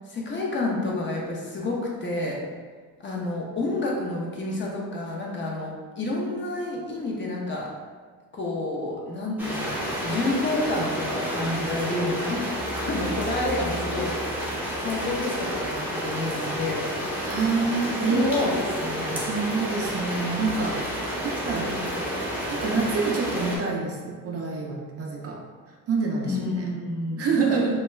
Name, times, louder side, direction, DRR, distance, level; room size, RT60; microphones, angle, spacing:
voice 1, 0.1-2.4 3.0-7.7 8.3-12.4 12.7-14.1 14.8-16.9 18.1-18.5 18.8-19.2 21.8-22.0 26.2-27.6, left 2 dB, 35° left, -2 dB, 0.6 m, -29 dB
sound 1, 9.4-23.6, equal, 5° right, 0.6 m, -30 dB
voice 2, 17.2-18.4 19.3-20.9 21.2-21.8 22.5-26.8 27.2-27.8, right 4 dB, 45° right, 0 dB, 0.4 m, -27 dB
2.2 x 2.2 x 3.0 m, 1.5 s
cardioid pair, 90°, 35 cm